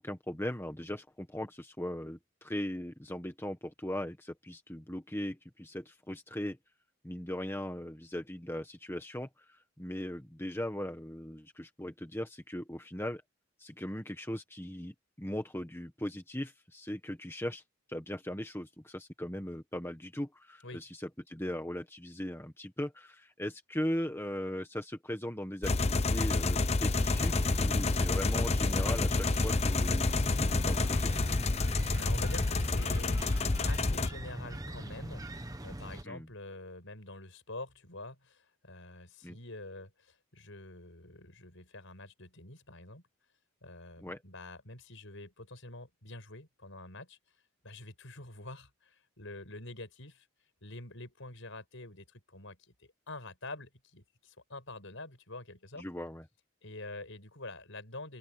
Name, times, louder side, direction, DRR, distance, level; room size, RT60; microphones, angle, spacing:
voice 1, 0.0-6.6 7.0-13.2 13.6-17.6 17.9-31.1 36.0-36.3 39.2-39.4 44.0-44.2 55.8-56.2, left 1 dB, 10° left, 1.5 m, -39 dB
sound 1, 25.6-34.1, left 3 dB, 30° left, 0.7 m, -29 dB
sound 2, 27.0-36.0, right 1 dB, 15° right, 1.2 m, -42 dB
voice 2, 32.0-33.2 33.7-43.0 43.6-47.2 47.6-50.3 50.6-55.9 56.6-58.2, left 2 dB, 60° left, 7.3 m, -46 dB
open air
head